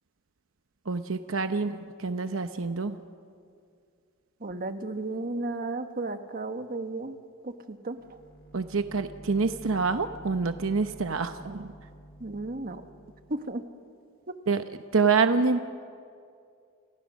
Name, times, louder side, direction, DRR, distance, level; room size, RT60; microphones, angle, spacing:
voice 1, 0.9-3.0 8.5-11.7 14.5-14.6 14.9-15.6, right 4 dB, 75° right, 8 dB, 0.9 m, -26 dB
voice 2, 4.4-7.1 7.4-8.0 12.2-12.8 13.3-13.6, right 2 dB, 45° right, 8 dB, 1.4 m, -34 dB
sound 1, 7.9-13.3, right 1 dB, 55° left, 6.7 m, -49 dB
29.5 x 29.5 x 6.4 m, 2.4 s
head